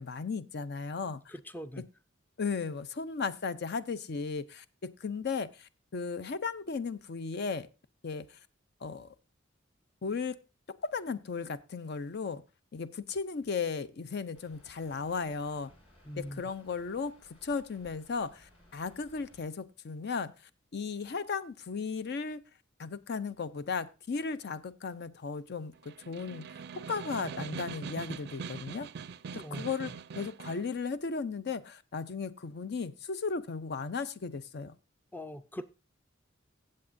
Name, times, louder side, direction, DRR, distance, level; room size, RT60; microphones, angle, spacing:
voice 1, 0.0-1.3 2.4-7.7 8.0-8.4 8.8-9.1 10.0-10.4 10.8-12.4 12.7-15.7 16.2-20.3 20.7-22.4 22.8-28.9 29.5-34.8, left 5 dB, 60° left, 14 dB, 0.5 m, -36 dB
voice 2, 1.3-1.8 16.0-16.4 29.3-29.7 35.1-35.6, equal, 10° left, 12 dB, 0.5 m, -41 dB
Rain, 14.3-19.5, left 1 dB, 35° left, 4.8 m, -61 dB
Snare drum, 25.7-30.7, right 6 dB, 55° right, 0.4 m, -42 dB
16.0 x 7.6 x 2.6 m, 0.30 s
head